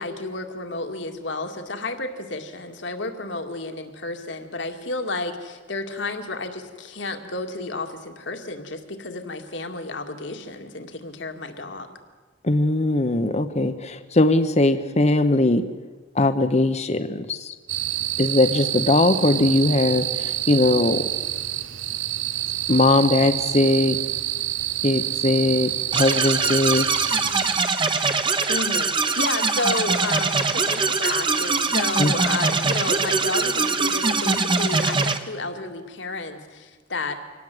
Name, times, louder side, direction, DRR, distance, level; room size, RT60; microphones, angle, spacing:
voice 1, 0.0-11.9 28.5-37.1, left 2 dB, 70° left, 5 dB, 2.2 m, -31 dB
voice 2, 12.4-15.6 16.1-17.5 18.2-21.0 22.7-24.0 24.8-26.9 32.0-32.1, left 2 dB, 35° left, 9 dB, 0.9 m, -20 dB
sound 1, 17.7-27.6, right 14 dB, 75° right, 0.7 m, -27 dB
sound 2, 25.9-35.2, right 4 dB, 25° right, 1.1 m, -22 dB
24.5 x 18.5 x 7.9 m, 1.4 s
head